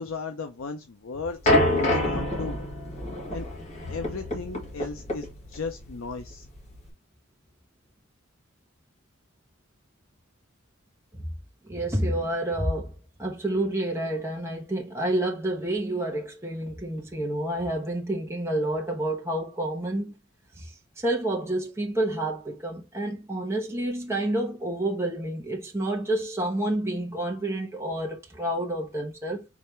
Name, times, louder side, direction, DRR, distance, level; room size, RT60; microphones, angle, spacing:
voice 1, 0.0-2.6 3.3-3.5 3.9-6.5, left 4 dB, 70° left, 0.6 m, -35 dB
sound 1, 1.5-6.9, left 1 dB, 35° left, 1.9 m, -27 dB
voice 2, 11.7-12.9 13.2-20.2 20.6-29.4, right 1 dB, 15° right, 1.0 m, -29 dB
4.8 x 3.3 x 3.2 m
head